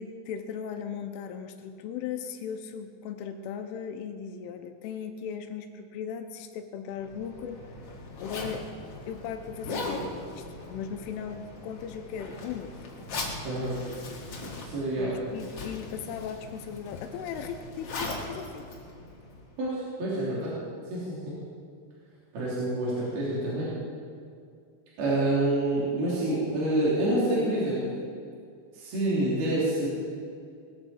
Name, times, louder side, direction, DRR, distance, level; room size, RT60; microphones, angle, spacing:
voice 1, 0.0-7.6 8.2-8.6 9.1-12.7 15.0-18.6, left 7 dB, 85° left, 6 dB, 3.2 m, -37 dB
Zipper (clothing), 7.0-19.6, left 2 dB, 45° left, 2.0 m, -39 dB
voice 2, 13.4-13.8 14.6-15.2 19.6-20.5 20.9-21.4 22.3-23.7 25.0-27.8 28.7-29.9, right 1 dB, 50° right, -8 dB, 4.9 m, -27 dB
20.0 x 14.0 x 4.5 m, 2.3 s
omnidirectional pair, 5.8 m